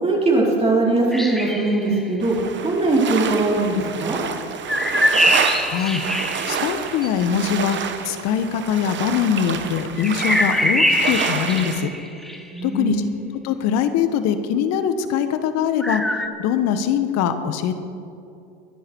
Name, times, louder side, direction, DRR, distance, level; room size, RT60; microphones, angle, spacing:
voice 1, 0.0-2.4 2.6-4.2 12.5-13.1, right 2 dB, 20° right, -4 dB, 4.4 m, -20 dB
sound 1, 1.1-2.1 4.7-7.1 10.0-12.6 15.8-16.3, equal, ahead, 1.4 m, -22 dB
sound 2, 2.2-11.8, right 7 dB, 35° right, 1.4 m, -29 dB
voice 2, 5.6-6.0 6.5-11.9 12.6-13.0 13.4-17.7, left 8 dB, 55° left, 10 dB, 1.4 m, -22 dB
23.0 x 10.0 x 4.7 m, 2.6 s
hypercardioid pair, 85°, 31 cm